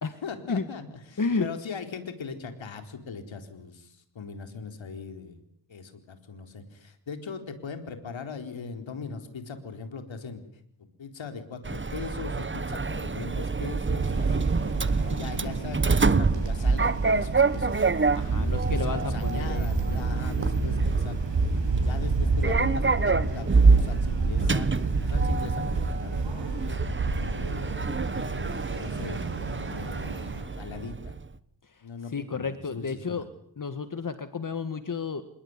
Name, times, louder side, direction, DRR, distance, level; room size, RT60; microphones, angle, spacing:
voice 1, 0.2-5.4 5.7-10.4 10.8-14.5 15.0-17.8 18.5-21.2 21.8-24.7 25.0-26.2 26.6-26.8 27.3-27.7 28.7-29.3 29.6-30.2 30.6-31.2 31.8-33.3, left 5 dB, 85° left, 7 dB, 4.2 m, -40 dB
voice 2, 1.2-1.5 15.4-15.5 18.1-19.7 32.1-33.2 33.6-35.2, left 4 dB, 45° left, 10 dB, 1.7 m, -31 dB
Sliding door, 11.6-31.2, right 4 dB, 25° right, 1.2 m, -27 dB
sound 1, 14.0-30.4, right 3 dB, 70° right, 7.6 m, -30 dB
28.0 x 20.5 x 9.7 m, 0.70 s
wide cardioid pair, 90°, 45 cm